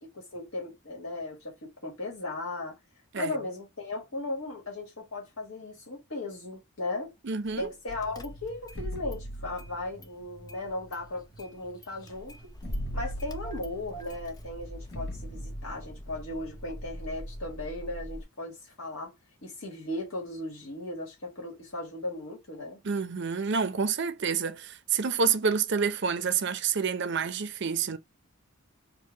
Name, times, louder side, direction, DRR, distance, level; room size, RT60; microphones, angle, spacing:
voice 1, 0.1-2.8 3.1-7.1 7.6-12.5 12.9-19.1 19.4-22.8, left 2 dB, 75° left, 1.6 m, -37 dB
voice 2, 7.2-7.7 22.8-28.0, right 6 dB, 55° right, 0.6 m, -28 dB
Car / Engine starting, 7.5-7.7 8.0-8.8 9.1-10.2 10.5-18.2, equal, 20° left, 0.5 m, -43 dB
sound 1, 7.9-11.8 12.0-12.1 12.4-17.5, equal, 55° left, 1.1 m, -41 dB
4.6 x 2.2 x 4.5 m
head